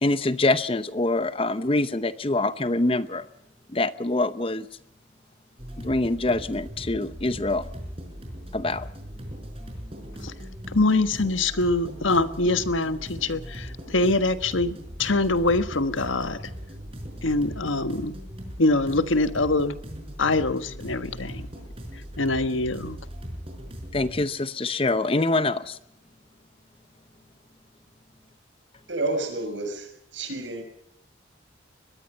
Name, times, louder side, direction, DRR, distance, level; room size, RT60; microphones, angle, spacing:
voice 1, 0.0-3.3 3.7-4.7 5.8-7.7 8.5-8.9 23.9-25.8, left 2 dB, 30° left, 14 dB, 0.8 m, -25 dB
sound 1, 5.6-24.2, equal, 30° right, 5.1 m, -39 dB
voice 2, 10.7-16.4 17.2-18.2 18.6-19.7 20.2-21.5 22.2-23.0, left 2 dB, 90° left, 11 dB, 1.4 m, -24 dB
voice 3, 28.9-30.6, right 2 dB, 75° right, 7 dB, 5.9 m, -30 dB
23.0 x 20.5 x 5.5 m, 0.75 s
head